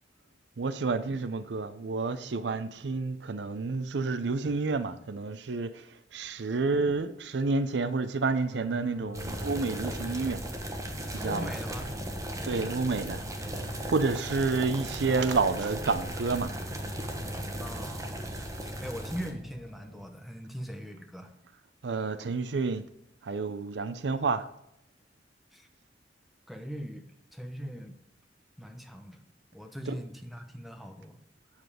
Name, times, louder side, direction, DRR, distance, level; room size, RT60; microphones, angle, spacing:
voice 1, 0.6-10.4 11.1-11.5 12.4-13.2 13.9-16.5 21.8-22.9 23.2-24.5 29.9-30.0, right 4 dB, 70° right, 0.5 m, -29 dB
sound 1, 8.4-20.0, left 1 dB, 80° left, 1.9 m, -47 dB
sound 2, 9.1-19.3, right 1 dB, 20° right, 1.2 m, -37 dB
voice 2, 11.2-12.0 17.6-18.3 18.6-21.3 25.5-25.7 26.5-28.0 28.6-29.2 29.5-31.2, equal, ahead, 0.9 m, -41 dB
7.8 x 7.2 x 4.9 m
head